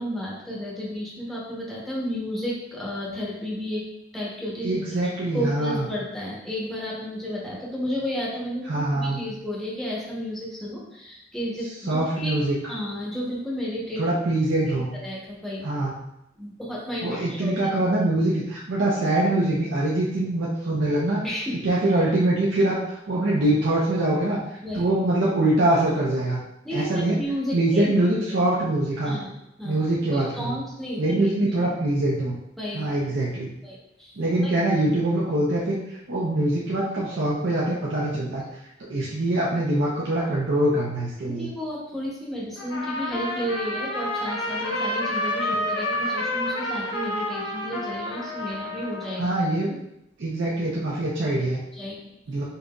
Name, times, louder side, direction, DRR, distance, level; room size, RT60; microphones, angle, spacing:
voice 1, 0.0-3.8 4.1-4.8 5.3-12.3 12.7-14.0 15.0-15.7 16.4-17.7 21.2-21.5 24.6-24.9 26.6-27.9 29.0-29.3 29.6-29.8 30.1-31.5 32.6-32.9 33.6-34.1 34.4-34.5 41.3-49.4 51.7-52.1, equal, ahead, -5 dB, 0.8 m, -32 dB
voice 2, 4.6-5.9 8.7-9.2 11.9-12.6 14.0-14.9 15.6-15.9 17.0-21.2 21.6-24.4 24.7-26.4 26.7-27.2 27.5-29.2 29.6-30.6 31.0-32.3 32.7-33.5 34.2-38.4 38.9-41.5 49.2-49.7 50.2-51.6 52.3-52.4, right 1 dB, 70° right, -6 dB, 0.6 m, -23 dB
Trumpet, 42.6-49.3, left 1 dB, 90° left, 0.7 m, -29 dB
5.4 x 2.6 x 2.2 m, 0.83 s
head